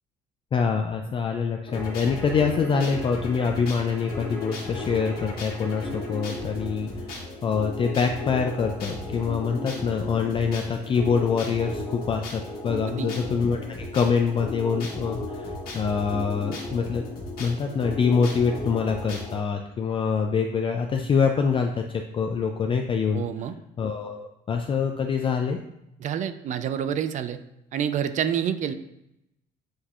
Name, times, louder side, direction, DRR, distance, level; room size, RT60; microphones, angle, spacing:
voice 1, 0.5-17.0 17.4-21.8 22.1-23.2 23.8-25.6, left 5 dB, 30° left, 4 dB, 0.3 m, -25 dB
sound 1, 1.7-19.4, left 2 dB, 65° left, 1.5 m, -35 dB
voice 2, 12.8-13.1 23.1-23.5 26.0-27.4 27.7-28.7, right 9 dB, 45° right, 11 dB, 0.4 m, -28 dB
7.6 x 2.7 x 2.4 m, 0.83 s
cardioid pair, 110°, 17 cm